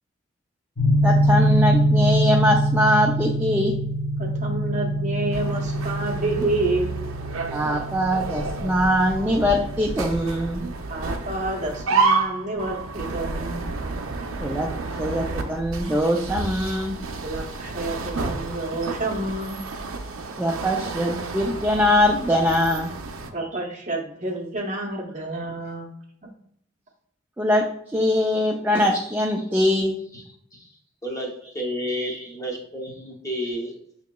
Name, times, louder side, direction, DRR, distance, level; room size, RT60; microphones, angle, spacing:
sound 1, 0.8-10.9, right 1 dB, 70° left, 1.6 m, -24 dB
voice 1, 1.0-3.8 7.5-10.6 14.4-14.7 15.0-17.0 20.4-22.9 27.4-27.7 27.9-30.0 32.1-32.2, left 1 dB, 10° right, -1 dB, 0.3 m, -22 dB
voice 2, 4.2-6.9 10.9-13.7 17.2-19.6 23.3-25.9 26.2-26.3, right 2 dB, 35° right, 0 dB, 0.7 m, -29 dB
sound 2, 5.3-23.3, right 3 dB, 75° right, 0.5 m, -30 dB
voice 3, 30.5-33.8, equal, 15° left, -1 dB, 0.7 m, -31 dB
6.1 x 2.8 x 2.2 m, 0.69 s
head